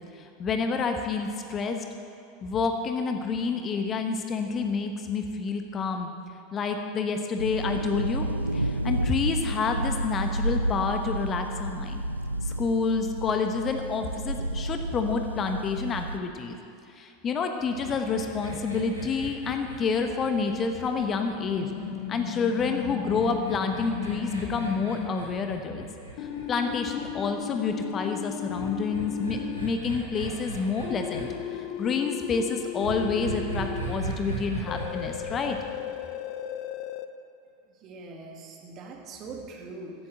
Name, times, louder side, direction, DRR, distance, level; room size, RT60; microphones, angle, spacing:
voice 1, 0.4-1.8 2.4-6.1 6.5-8.2 8.5-12.0 12.5-16.6 17.0-21.7 22.1-25.9 26.2-35.6, left 5 dB, 30° left, 5 dB, 1.0 m, -28 dB
sound 1, 7.4-16.2, right 1 dB, 85° right, 0.3 m, -31 dB
sound 2, 17.7-22.1 23.0-27.2 28.5-31.2 32.8-35.6, right 3 dB, 85° left, 2.3 m, -38 dB
sound 3, 21.6-25.1 26.2-29.7 30.8-34.0 34.7-37.1, left 11 dB, 45° left, 0.7 m, -35 dB
voice 2, 37.8-39.9, right 3 dB, 40° right, 1 dB, 2.2 m, -42 dB
14.0 x 8.5 x 7.8 m, 2.5 s
figure-of-eight pair, 80°, 0 cm